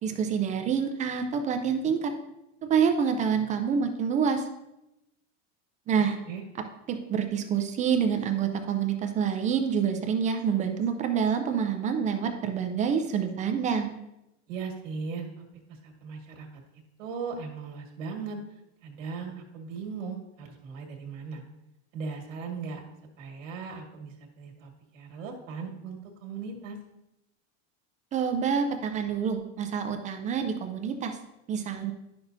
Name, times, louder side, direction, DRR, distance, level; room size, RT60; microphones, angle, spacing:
voice 1, 0.0-2.1 2.7-4.5 5.9-6.2 6.9-13.9 28.1-31.1 31.5-31.9, right 7 dB, 20° right, 6 dB, 0.4 m, -27 dB
voice 2, 14.5-15.4 15.8-16.5 17.0-18.4 18.8-21.4 21.9-22.8 23.2-26.8, right 5 dB, 90° right, 1 dB, 1.8 m, -38 dB
10.5 x 6.1 x 2.6 m, 0.90 s
supercardioid pair, 150°, 37 cm